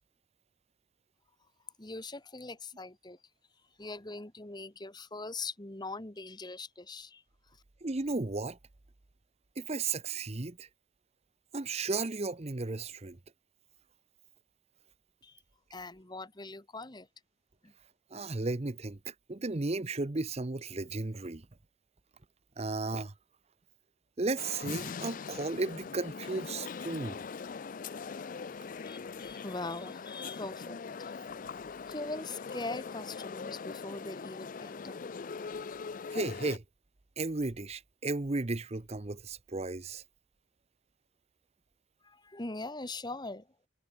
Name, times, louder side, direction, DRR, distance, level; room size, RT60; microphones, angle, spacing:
voice 1, 1.8-3.2 3.8-7.6 15.2-15.4 15.7-17.1 17.6-17.7 28.7-31.1 31.9-35.1 42.0-43.5, left 3 dB, 20° left, 1.3 m, -42 dB
voice 2, 7.8-8.6 9.6-10.7 11.5-13.2 18.1-21.5 22.6-23.1 24.2-27.2 36.1-36.6 37.2-40.0, right 3 dB, 30° right, 0.7 m, -34 dB
sound 1, 24.4-36.6, left 5 dB, 40° left, 0.4 m, -41 dB
head